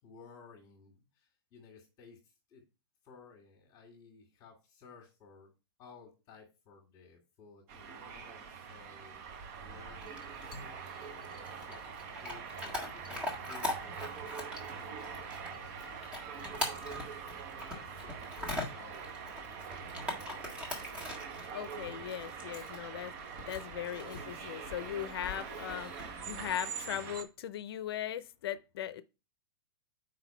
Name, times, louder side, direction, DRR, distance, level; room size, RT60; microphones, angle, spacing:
voice 1, 0.0-2.6 3.0-5.5 5.8-11.9 12.2-17.4 17.7-19.1 19.8-20.6, left 5 dB, 30° left, 1.7 m, -57 dB
sound 1, 7.7-27.2, right 6 dB, 40° right, 0.9 m, -44 dB
Chewing mastication / Dog, 10.0-26.5, left 2 dB, 10° right, 1.5 m, -43 dB
voice 2, 21.5-23.1 23.5-25.9 26.3-29.0, left 11 dB, 65° left, 0.5 m, -39 dB
4.8 x 4.0 x 5.6 m
hypercardioid pair, 145°, 14 cm